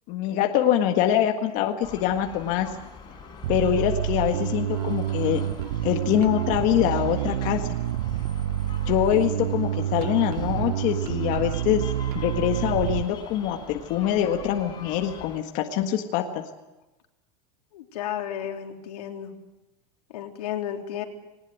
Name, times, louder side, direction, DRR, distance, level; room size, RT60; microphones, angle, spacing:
voice 1, 0.1-2.7 3.5-5.4 5.8-7.7 8.9-11.8 12.1-16.4, left 10 dB, 40° left, 4 dB, 1.7 m, -24 dB
sound 1, 1.8-15.4, left 6 dB, 20° left, 4.5 m, -43 dB
Bass guitar, 3.4-13.0, right 12 dB, 75° right, 0.8 m, -28 dB
voice 2, 17.7-19.3 20.1-21.0, left 10 dB, 80° left, 3 dB, 3.5 m, -33 dB
20.5 x 19.5 x 9.4 m, 1.0 s
supercardioid pair, 155°, 20 cm